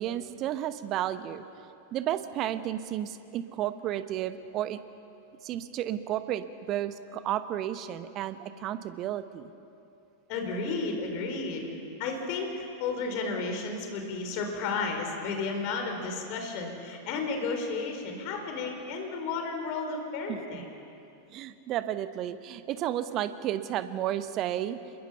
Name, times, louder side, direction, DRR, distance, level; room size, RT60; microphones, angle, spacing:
voice 1, 0.0-1.4 1.9-4.8 5.4-9.5 20.3-20.7 21.3-24.8, right 12 dB, 35° right, 12 dB, 1.1 m, -32 dB
voice 2, 10.3-11.7 12.0-20.6, left 4 dB, 45° left, 3 dB, 4.4 m, -33 dB
27.5 x 22.0 x 5.7 m, 2.7 s
figure-of-eight pair, 90°, 0 cm